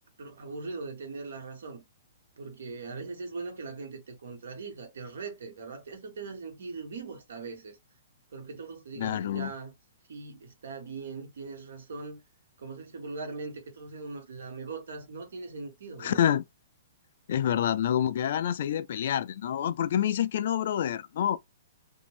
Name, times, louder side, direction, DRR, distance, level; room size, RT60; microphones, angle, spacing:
voice 1, 0.2-1.8 2.4-7.8 8.3-9.7 10.1-12.2 12.6-16.4, right 4 dB, 80° right, 1.2 m, -40 dB
voice 2, 9.0-9.5 16.0-16.4 17.3-21.4, left 10 dB, 60° left, 0.3 m, -27 dB
2.6 x 2.1 x 3.1 m
hypercardioid pair, 155°, 0 cm